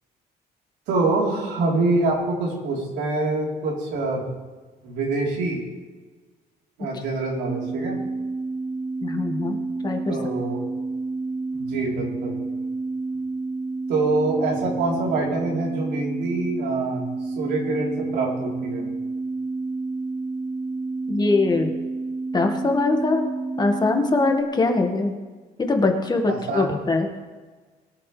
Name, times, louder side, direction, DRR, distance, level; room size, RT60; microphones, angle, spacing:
voice 1, 0.9-4.2 4.8-5.6 6.8-8.0 10.1-10.6 11.5-12.3 13.9-17.0 17.4-18.8 26.3-26.8, right 2 dB, 85° right, -3 dB, 3.9 m, -25 dB
sound 1, 7.5-24.4, right 3 dB, 20° right, 0.9 m, -29 dB
voice 2, 9.0-9.6 9.8-10.2 21.1-21.7 22.3-23.3 23.6-25.1 25.6-27.1, left 3 dB, 25° left, 3 dB, 1.8 m, -22 dB
21.5 x 9.6 x 3.4 m, 1.4 s
cardioid pair, 110°, 17 cm